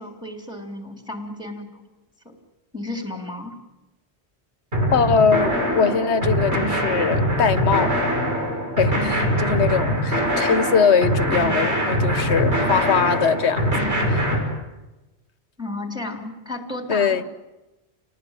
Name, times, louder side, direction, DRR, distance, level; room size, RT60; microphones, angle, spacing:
voice 1, 0.0-1.8 2.3-2.4 2.7-3.6 15.6-17.2, left 2 dB, 5° right, 3.7 m, -33 dB
sound 1, 4.7-14.4, equal, 80° right, 6.5 m, -22 dB
voice 2, 4.9-8.0 8.8-13.8 14.1-14.3 16.9-17.2, left 6 dB, 85° left, 1.4 m, -21 dB
29.5 x 19.0 x 9.2 m
omnidirectional pair, 1.1 m